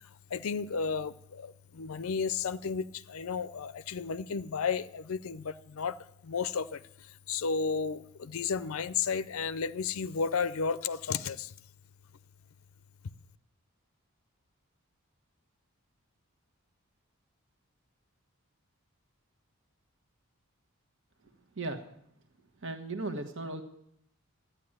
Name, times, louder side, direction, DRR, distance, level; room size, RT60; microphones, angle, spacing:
voice 1, 0.3-11.5, left 5 dB, 70° left, 0.5 m, -33 dB
voice 2, 22.6-23.6, right 2 dB, 55° right, 1.3 m, -36 dB
13.5 x 10.0 x 9.0 m
head